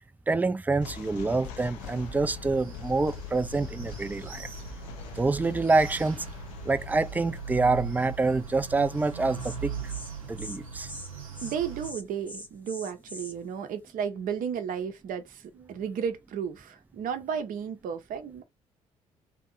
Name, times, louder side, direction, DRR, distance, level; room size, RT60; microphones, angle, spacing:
voice 1, 0.3-4.5 5.1-6.3 6.7-9.7 10.3-10.9, right 3 dB, 10° right, 0.4 m, -26 dB
sound 1, 0.8-12.1, left 8 dB, 70° left, 0.5 m, -44 dB
sound 2, 1.8-11.9, right 7 dB, 90° right, 0.7 m, -40 dB
Insect, 9.0-9.1 9.4-9.6 9.9-10.1 10.4-10.6 10.8-11.1 11.3-11.6 11.8-13.3, left 1 dB, 10° left, 0.8 m, -42 dB
voice 2, 11.4-18.4, right 7 dB, 55° right, 0.7 m, -33 dB
2.9 x 2.7 x 2.4 m
figure-of-eight pair, 45°, 17 cm